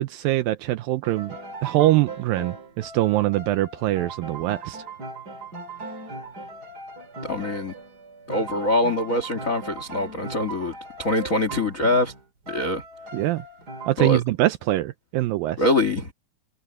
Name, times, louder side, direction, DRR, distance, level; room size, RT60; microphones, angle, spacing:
voice 1, 0.0-1.4 1.6-4.8 13.1-13.4 13.9-15.6, right 16 dB, 80° right, 2.1 m, -23 dB
sound 1, 1.0-13.9, right 3 dB, 30° right, 2.1 m, -39 dB
voice 2, 7.2-7.7 8.3-12.1 12.5-12.8 14.0-14.2 15.6-16.1, left 2 dB, 70° left, 0.7 m, -24 dB
omnidirectional pair, 4.6 m